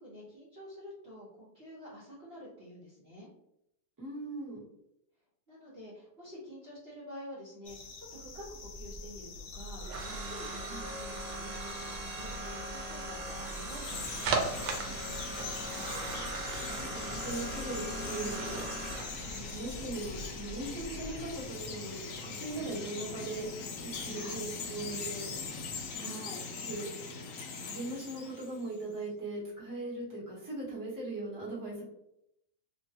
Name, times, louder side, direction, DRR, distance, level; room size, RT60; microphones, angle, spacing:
voice 1, 0.0-3.3 5.5-14.7 24.1-24.4 25.9-26.5, equal, 45° right, -9 dB, 0.9 m, -49 dB
voice 2, 4.0-4.6 10.7-10.9 15.7-16.1 16.6-18.6 19.2-23.4 23.8-25.3 25.9-26.1 26.6-26.9 27.6-31.8, right 2 dB, 15° right, -7 dB, 0.9 m, -40 dB
sound 1, 7.6-26.0, left 4 dB, 70° left, 1.0 m, -49 dB
sound 2, 8.4-21.4, right 3 dB, 75° right, 1.2 m, -39 dB
Chirp tweet, 13.2-28.8, left 4 dB, 90° left, 0.7 m, -41 dB
3.0 x 2.2 x 2.7 m, 0.79 s
omnidirectional pair, 1.9 m